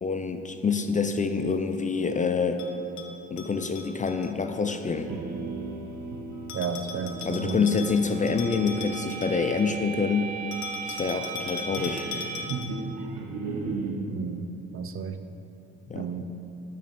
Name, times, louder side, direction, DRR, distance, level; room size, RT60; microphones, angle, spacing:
voice 1, 0.0-2.6 3.3-5.1 7.2-10.3 10.8-12.1 15.9-16.1, left 5 dB, 25° left, 7 dB, 0.4 m, -26 dB
Bell, 2.6-4.3 6.5-9.7 10.5-12.9, left 5 dB, 65° left, 1.0 m, -40 dB
sound 1, 4.9-14.0, right 5 dB, 80° right, 0.9 m, -36 dB
voice 2, 6.5-7.7 14.1-14.5 14.7-15.2 15.9-16.3, right 6 dB, 45° right, 9 dB, 0.5 m, -32 dB
6.6 x 6.3 x 5.3 m, 2.8 s
cardioid pair, 90°, 30 cm